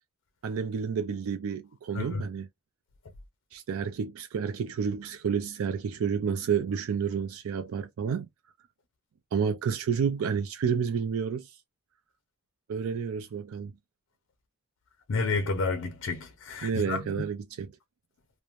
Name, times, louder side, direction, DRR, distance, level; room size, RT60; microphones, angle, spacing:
voice 1, 0.4-2.5 3.5-8.3 9.3-11.6 12.7-13.7 16.6-17.7, right 6 dB, 80° right, 0.4 m, -30 dB
voice 2, 15.1-17.0, left 4 dB, 70° left, 0.5 m, -30 dB
3.0 x 2.1 x 2.4 m
head